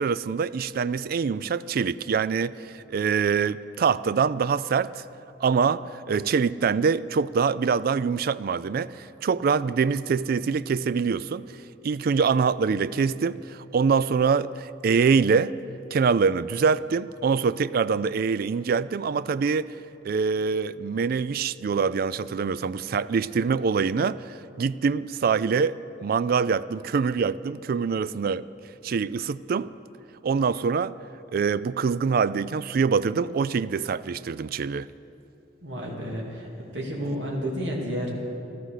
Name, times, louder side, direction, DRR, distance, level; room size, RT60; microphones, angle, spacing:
voice 1, 0.0-5.0 5.4-11.4 11.8-15.5 15.9-19.7 20.0-25.7 26.0-28.4 28.8-29.7 30.2-30.9 31.3-34.9, right 5 dB, 55° right, 18 dB, 0.3 m, -24 dB
voice 2, 35.6-36.5 36.7-38.1, equal, 75° right, -3 dB, 2.5 m, -31 dB
15.0 x 13.0 x 6.6 m, 2.9 s
head